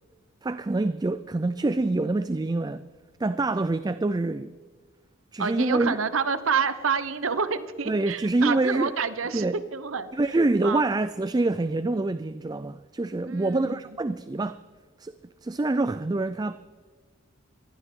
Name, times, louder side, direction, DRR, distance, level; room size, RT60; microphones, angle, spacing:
voice 1, 0.4-2.8 3.2-4.5 5.3-6.0 7.9-8.9 9.3-9.6 10.1-14.6 15.0-15.1 15.4-16.6, right 2 dB, 20° right, 0.4 m, -26 dB
voice 2, 5.4-10.1 10.6-10.9 13.3-13.8, right 5 dB, 75° right, 0.9 m, -28 dB
22.5 x 15.5 x 3.7 m
head